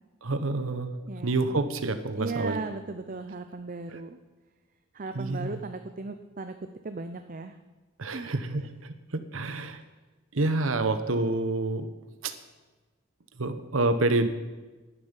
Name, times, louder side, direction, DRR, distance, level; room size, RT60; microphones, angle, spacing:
voice 1, 0.2-0.9 1.2-2.6 5.1-5.6 8.0-9.8 10.3-11.9 12.2-12.3 13.4-14.3, right 2 dB, 90° right, 10 dB, 1.1 m, -28 dB
voice 2, 1.1-1.6 2.2-4.2 4.9-6.5 6.8-7.5 8.1-8.3 9.7-9.8, right 3 dB, 45° right, 8 dB, 0.6 m, -37 dB
11.0 x 10.0 x 9.0 m, 1.2 s
head